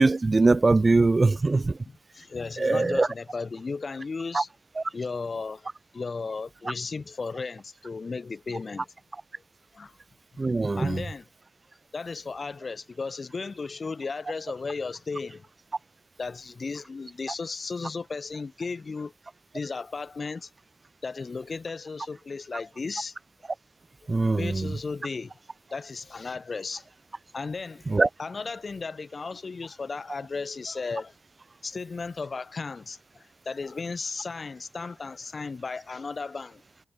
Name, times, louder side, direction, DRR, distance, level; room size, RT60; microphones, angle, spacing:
voice 1, 0.0-1.8 2.6-3.1 4.3-4.4 10.4-11.0 24.1-24.7 27.9-28.1, right 3 dB, 25° right, 0.5 m, -22 dB
voice 2, 1.5-4.5 4.9-5.7 5.9-8.9 9.7-9.9 10.6-11.3 11.9-15.4 16.2-19.1 19.5-20.5 21.0-23.1 24.4-25.3 25.7-26.8 27.3-27.9 28.2-31.1 31.6-33.0 33.5-36.6, left 4 dB, 30° left, 4.0 m, -35 dB
wide cardioid pair, 160°, 0 cm